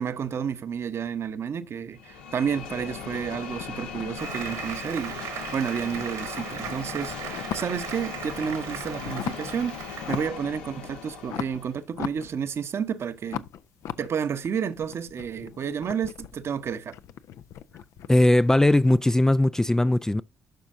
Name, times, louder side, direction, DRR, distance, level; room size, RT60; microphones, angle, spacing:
voice 1, 0.0-13.4 14.0-16.9, right 7 dB, 50° right, 0.9 m, -31 dB
sound 1, 2.0-11.8, left 6 dB, 75° left, 1.2 m, -39 dB
sound 2, 2.5-5.4 5.7-7.9 8.3-9.6 9.9-10.5 10.8-12.8 13.2-19.0, left 10 dB, 60° left, 0.6 m, -39 dB
Applause, 4.2-10.3, right 9 dB, 65° right, 1.7 m, -38 dB
voice 2, 18.1-20.2, left 1 dB, 10° left, 0.4 m, -19 dB
11.5 x 6.1 x 2.6 m
figure-of-eight pair, 40°, 6 cm